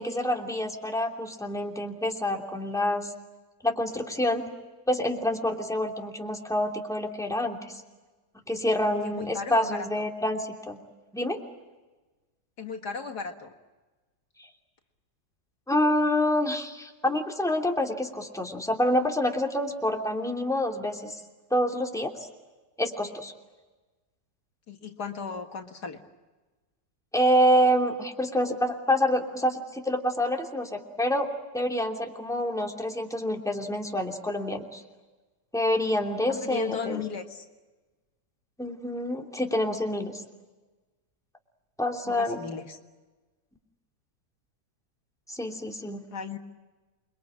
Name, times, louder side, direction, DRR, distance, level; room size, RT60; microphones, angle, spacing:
voice 1, 0.0-3.1 3.6-4.5 4.9-7.6 8.5-10.8 11.1-11.4 14.4-14.5 15.7-21.2 21.5-22.1 22.8-23.3 27.1-31.3 31.5-34.8 35.5-37.0 38.6-40.2 41.8-42.4 45.3-46.0, left 1 dB, ahead, 1 dB, 2.9 m, -27 dB
voice 2, 9.0-10.0 12.6-13.5 24.7-26.0 36.3-37.5 42.1-42.8 46.1-46.4, left 5 dB, 70° left, 4 dB, 2.3 m, -35 dB
28.5 x 23.0 x 8.9 m, 1.2 s
omnidirectional pair, 1.8 m